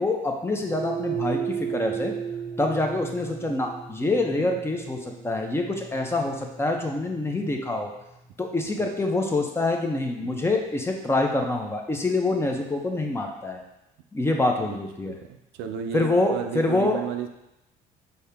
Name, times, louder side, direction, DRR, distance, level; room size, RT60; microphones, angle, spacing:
voice 1, 0.0-2.1 2.6-7.9 8.4-13.6 14.1-15.2 15.9-17.0, left 2 dB, 15° left, 2 dB, 0.6 m, -26 dB
sound 1, 0.7-9.1, right 8 dB, 30° right, 0.6 m, -35 dB
voice 2, 15.0-17.3, right 8 dB, 90° right, 6 dB, 0.5 m, -34 dB
5.4 x 2.8 x 3.4 m, 0.88 s
cardioid pair, 110°, 17 cm